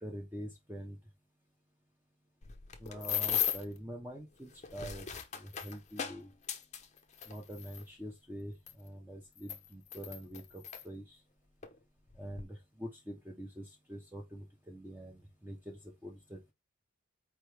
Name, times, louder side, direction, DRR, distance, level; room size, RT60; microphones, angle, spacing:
voice 1, 0.0-1.0 2.8-5.1 5.3-6.3 7.3-11.2 12.2-16.5, equal, 10° right, 0.6 m, -45 dB
sound 1, 2.4-3.8 4.5-7.8 8.7-8.8 9.4-10.8 11.6-11.8 12.1-12.4, left 10 dB, 35° left, 0.6 m, -37 dB
4.5 x 3.1 x 3.2 m
head